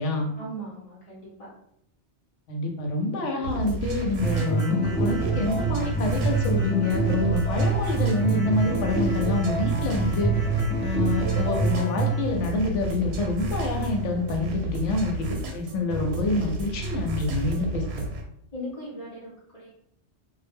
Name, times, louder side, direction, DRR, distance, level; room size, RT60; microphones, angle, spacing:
voice 1, 0.4-1.5 18.5-19.7, equal, 35° left, -7 dB, 0.7 m, -38 dB
voice 2, 2.5-10.3 10.8-18.0, left 3 dB, 85° left, 2 dB, 0.9 m, -27 dB
sound 1, 3.4-18.2, right 2 dB, 70° right, 0.8 m, -32 dB
sound 2, 4.2-12.2, right 4 dB, 15° left, 0.3 m, -26 dB
2.1 x 2.0 x 3.4 m, 0.74 s
omnidirectional pair, 1.2 m